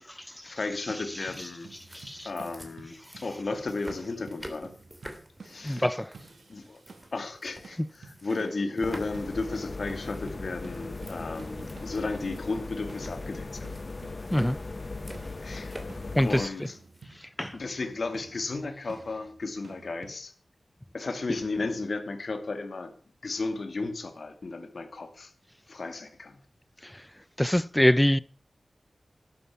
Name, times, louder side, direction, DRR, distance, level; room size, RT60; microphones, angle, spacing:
voice 1, 0.4-1.7 2.2-4.7 5.4-5.9 6.5-6.8 7.1-13.7 15.4-16.8 17.5-20.3 20.9-22.9 23.2-25.3 25.7-26.4, left 3 dB, 70° left, 2.4 m, -34 dB
sound 1, 0.9-7.3 7.6-9.6 9.9-20.2, right 4 dB, 90° right, 1.6 m, -51 dB
sound 2, 1.2-17.0, equal, 5° right, 3.2 m, -49 dB
voice 2, 1.9-2.3 5.6-6.1 7.8-7.9 14.3-14.6 16.1-16.5 17.4-17.6 26.8-27.0 27.4-28.2, left 1 dB, 10° left, 0.6 m, -24 dB
sound 3, 8.8-16.5, left 3 dB, 45° left, 1.2 m, -38 dB
12.5 x 9.9 x 7.0 m
cardioid pair, 55°, 0 cm